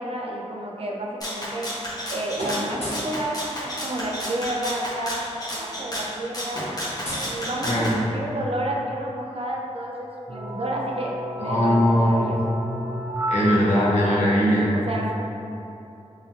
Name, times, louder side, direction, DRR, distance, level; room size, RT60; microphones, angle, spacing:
voice 1, 0.0-1.7 2.1-5.2 5.5-6.6 7.3-9.9 10.3-11.1 11.4-12.4 14.7-15.1, right 1 dB, 55° right, -3 dB, 0.5 m, -30 dB
Rattle (instrument), 1.2-8.0, equal, 30° left, 0.8 m, -32 dB
sound 1, 1.3-2.1 2.3-3.2 4.5-4.6 4.9-5.1 5.4-8.0, equal, 60° left, 1.3 m, -36 dB
voice 2, 7.6-8.0 11.4-12.4 13.3-14.6, equal, 75° left, -8 dB, 1.0 m, -20 dB
sound 2, 10.3-14.0, equal, 20° right, 0.8 m, -31 dB
3.8 x 2.8 x 2.9 m, 2.9 s
wide cardioid pair, 60°, 12 cm